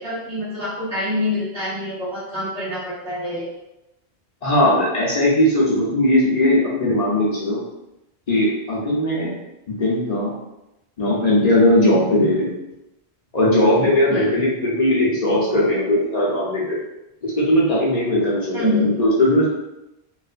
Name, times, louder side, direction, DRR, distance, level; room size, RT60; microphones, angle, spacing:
voice 1, 0.0-3.4 14.1-14.3 18.5-18.9, left 1 dB, 5° right, -12 dB, 1.0 m, -25 dB
voice 2, 4.4-7.6 8.3-9.3 9.7-10.3 11.0-12.5 13.3-16.8 17.2-19.4, left 1 dB, 45° left, -6 dB, 0.7 m, -18 dB
3.1 x 2.0 x 2.4 m, 0.93 s
omnidirectional pair, 1.1 m